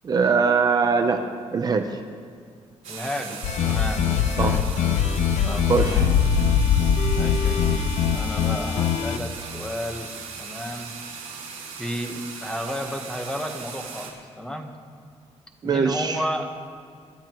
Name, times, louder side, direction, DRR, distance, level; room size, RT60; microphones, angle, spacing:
voice 1, 0.0-2.0 4.4-4.6 5.7-6.1 15.6-16.2, right 5 dB, 35° right, 5 dB, 0.6 m, -22 dB
sound 1, 2.8-14.1, right 5 dB, 65° right, 3.0 m, -38 dB
voice 2, 2.9-4.6 5.4-6.1 7.1-10.9 11.8-14.7 15.6-16.5, equal, 5° left, 3 dB, 1.1 m, -33 dB
sound 2, 3.4-9.2, left 7 dB, 75° left, 0.7 m, -22 dB
25.5 x 12.5 x 3.0 m, 2.1 s
wide cardioid pair, 170°, 12 cm